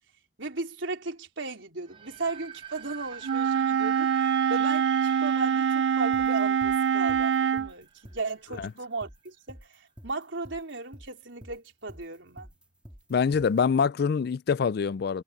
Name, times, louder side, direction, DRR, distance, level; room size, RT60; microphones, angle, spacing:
voice 1, 0.4-12.5, right 3 dB, 85° right, 4.0 m, -36 dB
sound 1, 1.9-8.7, right 7 dB, 25° right, 1.3 m, -46 dB
Wind instrument woodwind instrument, 3.2-7.7, right 7 dB, 70° right, 0.5 m, -24 dB
sound 2, 6.1-13.6, equal, 5° right, 2.9 m, -48 dB
voice 2, 13.1-15.2, left 6 dB, 55° left, 0.4 m, -25 dB
head